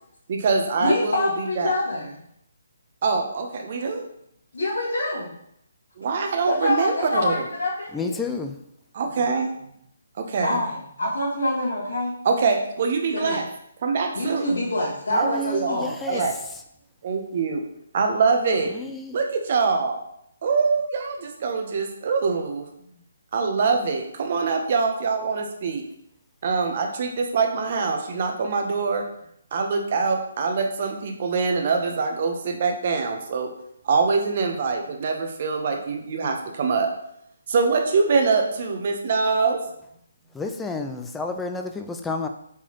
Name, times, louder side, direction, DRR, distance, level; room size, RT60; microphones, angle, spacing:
voice 1, 0.3-1.3 1.6-1.7 3.0-4.0 6.0-7.4 8.9-9.5 10.2-10.6 12.2-13.4 13.8-14.4 15.1-15.7 16.1-16.3 17.0-17.6 17.9-18.7 19.1-20.0 20.4-22.7 23.3-25.8 26.4-29.0 29.5-33.5 33.8-36.9 37.5-39.6, right 4 dB, 45° right, 3 dB, 0.8 m, -24 dB
voice 2, 0.8-2.2 4.5-5.3 6.5-8.2 10.4-12.1 13.1-13.4 14.1-16.3, left 2 dB, 75° left, -9 dB, 1.6 m, -26 dB
voice 3, 7.9-8.6 15.1-16.2 18.7-19.2 40.3-42.3, left 3 dB, 5° left, 4 dB, 0.3 m, -30 dB
4.4 x 3.9 x 3.0 m, 0.74 s
figure-of-eight pair, 150°, 0 cm